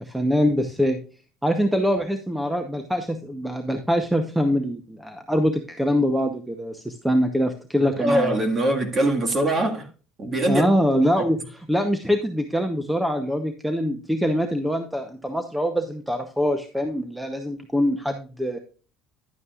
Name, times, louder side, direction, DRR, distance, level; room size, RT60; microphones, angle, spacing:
voice 1, 0.0-1.0 1.4-8.4 10.5-18.6, equal, 5° right, 0.8 m, -24 dB
voice 2, 7.8-9.9 10.2-10.7 11.2-11.3, right 1 dB, 25° right, 1.7 m, -23 dB
11.0 x 8.5 x 2.4 m
cardioid pair, 135°, 0 cm